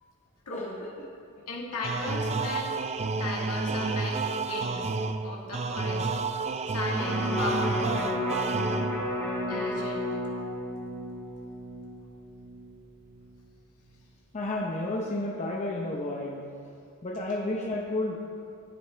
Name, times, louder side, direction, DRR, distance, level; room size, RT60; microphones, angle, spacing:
voice 1, 0.4-0.7 1.5-2.8 3.2-5.0 5.2-6.1 6.7-8.0 9.5-10.1, left 2 dB, 85° left, -3 dB, 1.7 m, -36 dB
sound 1, 1.8-9.2, right 3 dB, 30° right, 0.3 m, -30 dB
Electric guitar, 7.0-13.2 13.6-13.7, left 1 dB, 10° left, 1.8 m, -33 dB
voice 2, 14.3-16.4 17.0-18.1, left 2 dB, 30° left, -2 dB, 0.8 m, -31 dB
13.5 x 8.4 x 3.3 m, 2.4 s
head